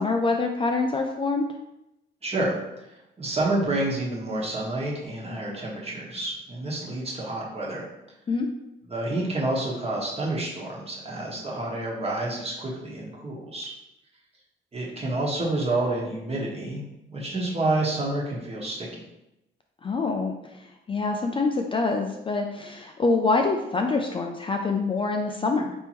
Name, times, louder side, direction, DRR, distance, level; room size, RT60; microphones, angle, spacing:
voice 1, 0.0-1.5 8.3-8.5 19.8-20.3 20.9-25.7, left 3 dB, 25° left, 3 dB, 0.4 m, -25 dB
voice 2, 2.2-2.5 3.2-7.8 8.9-13.7 14.7-16.8 17.1-18.9, right 2 dB, 30° right, -3 dB, 1.3 m, -29 dB
4.3 x 3.5 x 3.0 m, 0.90 s
cardioid pair, 90°, 20 cm